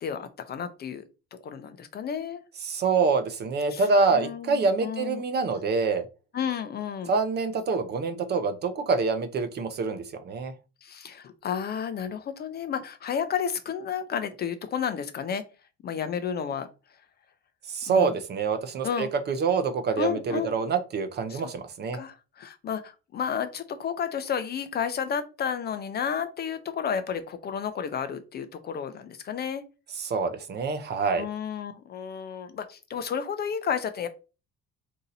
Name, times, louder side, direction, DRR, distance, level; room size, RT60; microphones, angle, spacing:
voice 1, 0.0-1.0 1.3-2.4 3.7-3.8 4.1-5.2 6.3-7.1 10.8-15.4 15.8-16.7 17.9-18.1 18.8-19.1 20.0-20.5 21.3-21.4 21.9-29.6 31.2-34.1, left 7 dB, 35° left, 10 dB, 0.4 m, -32 dB
voice 2, 2.6-6.1 7.1-10.5 17.7-22.0 30.0-31.3, right 4 dB, 35° right, 9 dB, 0.5 m, -26 dB
4.0 x 2.7 x 3.9 m, 0.31 s
cardioid pair, 170°, 30 cm